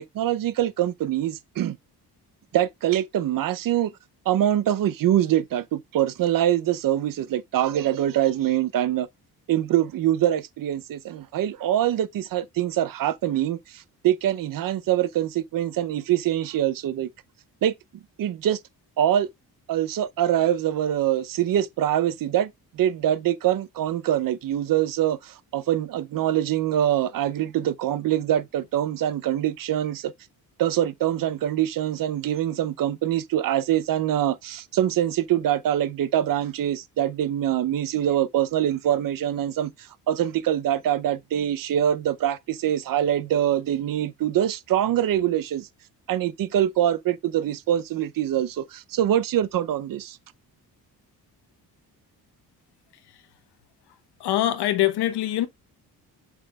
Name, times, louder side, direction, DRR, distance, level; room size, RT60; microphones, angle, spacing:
voice 1, 0.0-1.8 2.5-3.9 4.3-9.1 9.5-17.1 17.6-17.7 18.2-18.6 19.0-19.3 19.7-30.1 30.6-39.7 40.1-45.7 46.1-50.2, right 11 dB, 60° right, 0.7 m, -24 dB
voice 2, 54.2-55.5, left 13 dB, 80° left, 1.0 m, -23 dB
8.1 x 5.7 x 2.3 m
cardioid pair, 175°, 38 cm